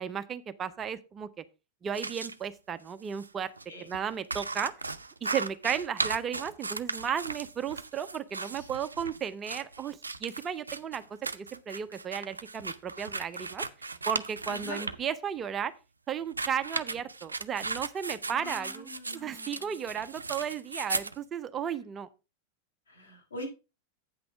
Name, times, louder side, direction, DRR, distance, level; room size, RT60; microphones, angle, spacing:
voice 1, 0.0-1.4 1.8-3.5 3.8-4.7 5.2-13.6 14.1-15.7 16.1-22.1, right 8 dB, 25° right, 12 dB, 0.6 m, -34 dB
sound 1, 1.9-2.3 3.1-3.3 3.6-3.7 3.9-15.0 16.2-21.2, right 3 dB, 80° right, 0.5 m, -36 dB
voice 2, 14.4-14.9 18.3-19.8 22.9-23.5, left 2 dB, 70° left, 0 dB, 4.4 m, -43 dB
8.7 x 6.0 x 4.7 m, 0.29 s
figure-of-eight pair, 90°, 0 cm